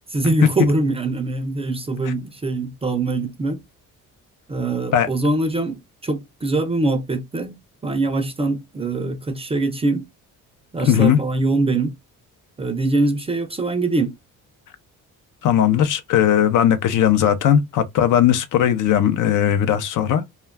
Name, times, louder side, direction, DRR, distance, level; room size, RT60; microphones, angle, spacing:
voice 1, 0.1-3.6 4.5-10.1 10.7-11.9 12.6-14.1, right 2 dB, 20° right, 0.4 m, -23 dB
voice 2, 10.8-11.2 15.4-20.2, left 10 dB, 65° left, 0.6 m, -18 dB
2.2 x 2.2 x 3.3 m
cardioid pair, 130°, 33 cm